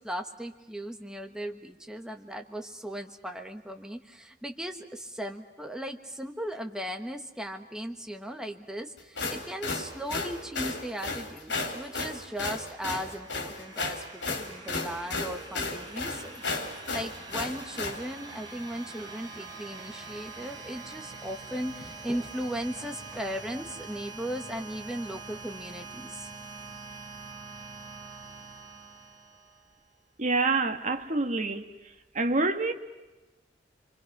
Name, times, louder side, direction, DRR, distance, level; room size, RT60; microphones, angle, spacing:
voice 1, 0.0-26.3, equal, 5° right, 1.3 m, -37 dB
sound 1, 9.0-18.0, left 3 dB, 75° left, 3.8 m, -33 dB
sound 2, 12.3-29.9, right 3 dB, 25° right, 4.9 m, -45 dB
voice 2, 30.2-31.6 32.1-32.7, right 3 dB, 45° right, 1.4 m, -26 dB
29.0 x 24.0 x 6.0 m
head